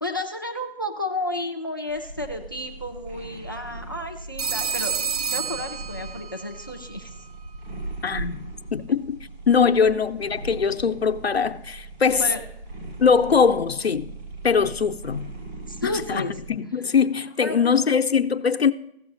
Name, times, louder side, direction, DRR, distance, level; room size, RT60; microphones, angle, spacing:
voice 1, 0.0-4.9 5.3-7.1 9.8-9.9 12.2-12.4 15.7-16.3 17.4-17.8 18.1-18.3, left 1 dB, 20° left, 0.4 m, -32 dB
cat purr, 1.9-16.5, right 2 dB, 80° right, 3.3 m, -39 dB
Telephone, 4.4-6.5, right 6 dB, 40° right, 0.5 m, -28 dB
voice 2, 8.0-8.4 8.7-9.2 9.5-12.3 13.0-14.2 14.4-15.3 15.8-18.7, left 6 dB, 80° left, 0.8 m, -21 dB
16.0 x 6.2 x 2.6 m
figure-of-eight pair, 155°, 31 cm